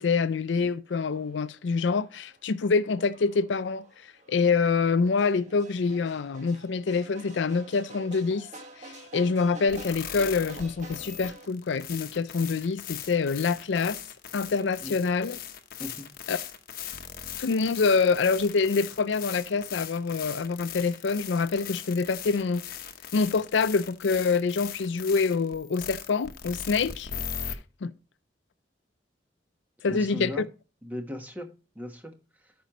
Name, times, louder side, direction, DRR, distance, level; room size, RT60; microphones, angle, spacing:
voice 1, 0.0-3.8 4.3-8.5 8.8-14.0 14.3-15.4 16.3-16.4 17.4-22.6 23.1-27.1 27.4-27.9 29.8-30.4, left 4 dB, 80° left, 0.5 m, -26 dB
sound 1, 0.9-11.5, right 2 dB, 40° right, 1.4 m, -49 dB
sound 2, 9.7-27.5, left 8 dB, 50° left, 0.9 m, -39 dB
voice 2, 29.9-30.5 30.8-31.5 31.7-32.1 32.4-32.5, left 1 dB, 10° right, 1.2 m, -37 dB
13.5 x 5.2 x 2.9 m
head